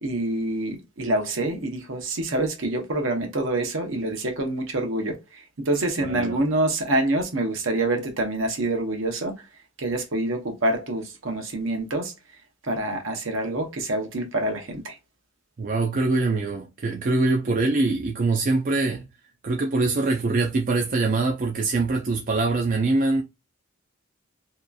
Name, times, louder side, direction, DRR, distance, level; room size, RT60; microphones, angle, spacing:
voice 1, 0.0-9.4 9.8-12.1 12.6-15.0, right 2 dB, 70° right, 0.8 m, -26 dB
voice 2, 6.1-6.4 15.6-19.1 19.4-23.2, right 3 dB, 40° right, 0.4 m, -23 dB
2.8 x 2.4 x 2.2 m
head